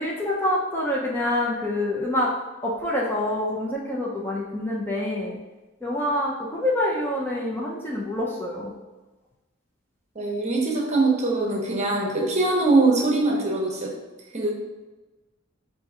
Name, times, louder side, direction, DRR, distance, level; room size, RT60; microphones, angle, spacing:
voice 1, 0.0-2.3 2.6-5.4 5.8-8.7, left 1 dB, 10° left, -4 dB, 0.5 m, -26 dB
voice 2, 10.1-13.9 14.3-14.5, right 2 dB, 35° right, -2 dB, 0.8 m, -22 dB
4.5 x 2.6 x 3.6 m, 1.2 s
head